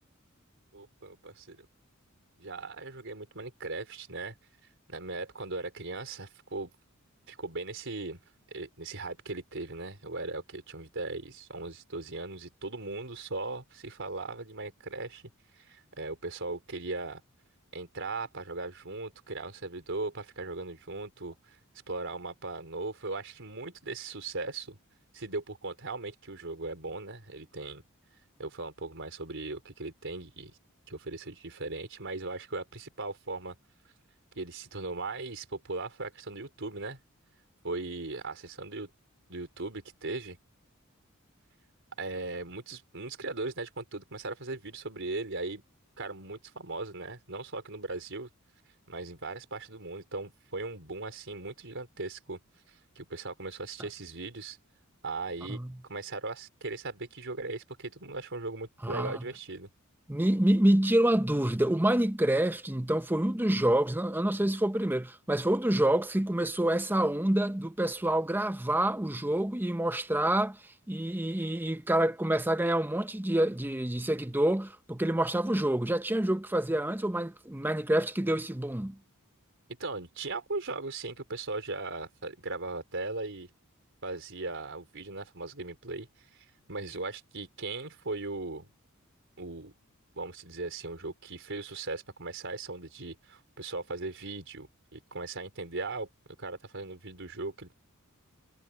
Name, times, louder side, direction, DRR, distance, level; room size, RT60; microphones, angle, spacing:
voice 1, 0.7-1.7 2.4-4.3 4.9-6.7 7.3-8.2 8.5-15.2 15.6-17.2 17.7-21.6 21.9-24.8 25.1-27.8 28.4-30.5 30.9-33.5 34.3-37.0 37.6-38.9 39.3-40.4 42.0-45.6 46.0-48.3 48.9-52.4 52.7-54.6 55.0-55.6 55.9-59.7 79.8-83.5 84.0-86.1 86.3-88.7 89.4-89.7 90.1-96.1 96.4-97.7, right 3 dB, 60° right, 4.3 m, -38 dB
voice 2, 58.8-59.2 60.1-70.6 70.9-79.0, right 1 dB, 10° right, 0.8 m, -27 dB
head